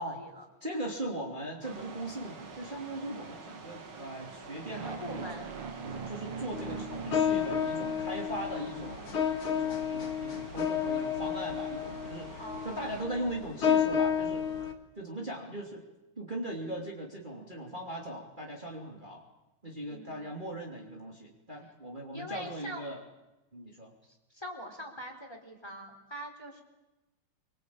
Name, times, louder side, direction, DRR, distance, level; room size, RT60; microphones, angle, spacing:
voice 1, 0.0-0.4 4.7-5.5 12.4-13.1 19.9-20.4 21.6-21.7 22.1-23.0 24.0-26.6, equal, 10° left, 3 dB, 4.2 m, -44 dB
voice 2, 0.6-5.3 5.8-9.2 9.5-14.5 15.0-15.8 16.2-19.2 19.6-23.0 23.5-23.9, right 1 dB, 20° right, -1 dB, 3.2 m, -39 dB
sound 1, 1.6-13.1, right 4 dB, 65° right, 3.2 m, -48 dB
sound 2, 4.6-8.7, right 5 dB, 85° right, 3.1 m, -42 dB
sound 3, 6.5-14.7, left 8 dB, 70° left, 2.8 m, -31 dB
26.5 x 24.5 x 8.7 m, 1.0 s
omnidirectional pair, 2.4 m